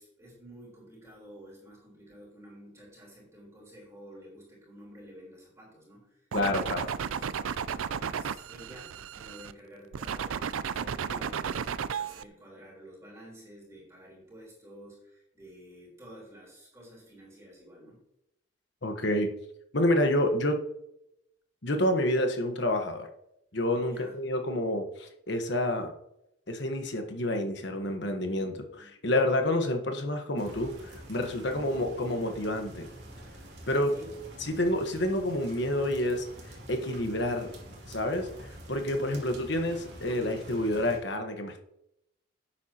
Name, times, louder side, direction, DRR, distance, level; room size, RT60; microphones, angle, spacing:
voice 1, 0.0-7.3 7.7-18.0 23.8-24.1 28.7-29.2 33.9-34.6, equal, 15° right, -4 dB, 3.9 m, -51 dB
voice 2, 6.3-6.9 18.8-19.3 19.7-20.6 21.6-23.1 23.5-25.9 26.5-30.7 31.1-32.9 33.7-33.9 34.4-36.3 36.7-37.5 37.9-38.3 38.7-41.6, left 1 dB, 55° left, 5 dB, 1.3 m, -28 dB
sound 1, 6.3-9.5 9.9-12.2, right 7 dB, 85° right, 0.4 m, -33 dB
sound 2, 30.4-41.0, right 1 dB, 55° right, 2.6 m, -47 dB
11.5 x 8.8 x 2.9 m, 0.80 s
head